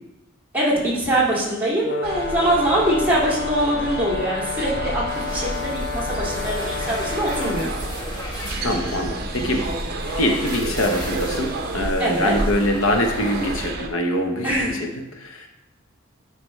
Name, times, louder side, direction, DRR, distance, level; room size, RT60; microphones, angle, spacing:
voice 1, 0.5-5.0 5.3-7.7 12.0-12.3 14.4-14.8, right 1 dB, 10° right, -7 dB, 2.1 m, -23 dB
Brass instrument, 1.8-7.7, left 6 dB, 55° left, 0.6 m, -30 dB
sound 1, 2.0-13.9, right 2 dB, 50° right, 0.7 m, -31 dB
sound 2, 5.1-13.7, equal, 20° left, 1.4 m, -37 dB
voice 2, 8.6-9.9 10.2-14.9 15.1-15.5, left 1 dB, 80° left, 4 dB, 0.9 m, -24 dB
9.6 x 5.1 x 3.2 m, 0.98 s
head